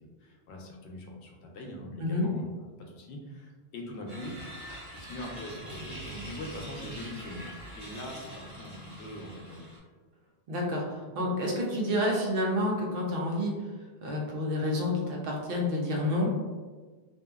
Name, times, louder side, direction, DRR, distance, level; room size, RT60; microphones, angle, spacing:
voice 1, 0.0-4.4 4.9-9.7, left 1 dB, 85° left, 1 dB, 0.9 m, -42 dB
sound 1, 4.1-9.8, right 1 dB, 20° right, 1.3 m, -44 dB
voice 2, 10.5-13.5 14.0-16.3, left 1 dB, 60° right, -2 dB, 0.8 m, -29 dB
2.8 x 2.5 x 2.3 m, 1.4 s
omnidirectional pair, 1.1 m